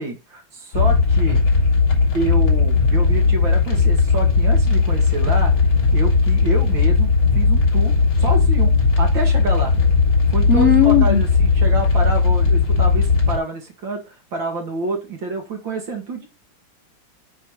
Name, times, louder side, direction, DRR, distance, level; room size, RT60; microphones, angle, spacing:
voice 1, 0.0-1.4 2.1-5.5 5.9-8.7 9.0-9.8 10.3-16.3, right 2 dB, 70° right, 2.9 m, -28 dB
sound 1, 0.7-13.4, left 4 dB, 80° left, 4.2 m, -17 dB
voice 2, 10.5-11.2, left 8 dB, 50° left, 0.9 m, -15 dB
8.9 x 4.9 x 5.6 m
omnidirectional pair, 2.2 m